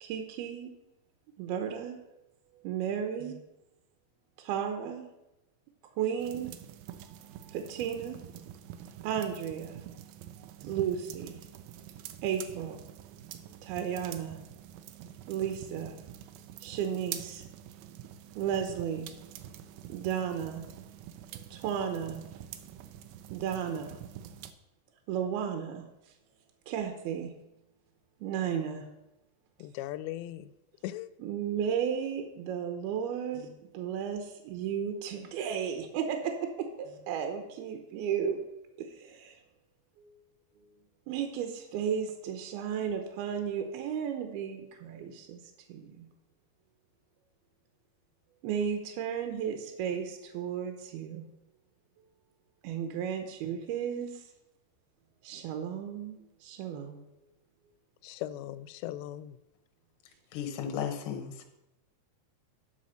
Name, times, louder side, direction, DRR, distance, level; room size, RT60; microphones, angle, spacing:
voice 1, 0.0-0.8 1.4-2.2 2.5-3.4 4.4-5.1 5.9-6.5 7.5-8.2 9.0-9.8 10.4-11.4 12.2-12.8 13.6-14.4 15.3-16.0 16.6-17.4 18.4-19.1 19.9-20.6 21.3-22.2 23.3-24.0 25.1-25.9 26.7-27.3 28.2-28.9 31.2-38.4 38.8-39.4 40.0-40.2 40.6-40.7 41.1-46.1 48.4-51.2 52.6-54.3 55.2-57.1, right 8 dB, 75° right, 2.6 m, -34 dB
sound 1, 6.2-24.5, right 10 dB, 90° right, 2.1 m, -46 dB
voice 2, 29.6-30.5 30.8-31.1 58.0-59.3, left 13 dB, 85° left, 2.7 m, -38 dB
voice 3, 60.3-61.5, left 8 dB, 70° left, 2.1 m, -35 dB
10.0 x 5.3 x 6.3 m
omnidirectional pair, 5.1 m